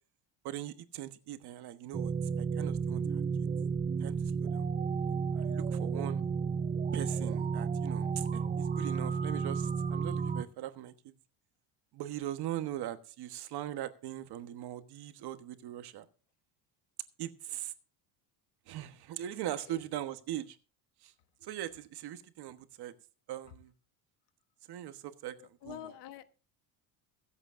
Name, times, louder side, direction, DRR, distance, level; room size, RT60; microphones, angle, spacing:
voice 1, 0.4-3.2 4.0-4.7 5.3-6.2 6.9-11.1 11.9-16.0 17.2-17.7 18.7-20.6 21.0-21.1 21.4-22.9 23.3-23.7 24.7-25.9, right 12 dB, 60° right, 9 dB, 1.3 m, -40 dB
sound 1, 1.9-10.4, right 5 dB, 20° right, 0.5 m, -32 dB
voice 2, 25.4-26.2, left 12 dB, 65° left, 10 dB, 1.3 m, -47 dB
23.0 x 8.0 x 2.6 m, 0.36 s
cardioid pair, 120°, 44 cm